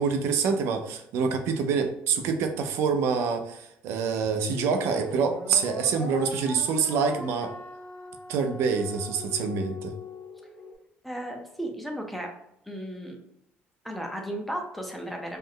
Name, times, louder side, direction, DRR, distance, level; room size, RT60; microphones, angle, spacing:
voice 1, 0.0-7.5 8.3-9.9, right 5 dB, 75° right, 7 dB, 0.5 m, -26 dB
sound 1, 4.2-10.7, left 2 dB, 60° left, 1.3 m, -40 dB
voice 2, 11.0-12.3 12.7-13.2 13.8-15.4, right 1 dB, ahead, 2 dB, 0.5 m, -34 dB
3.2 x 2.0 x 3.7 m, 0.78 s
cardioid pair, 150°, 4 cm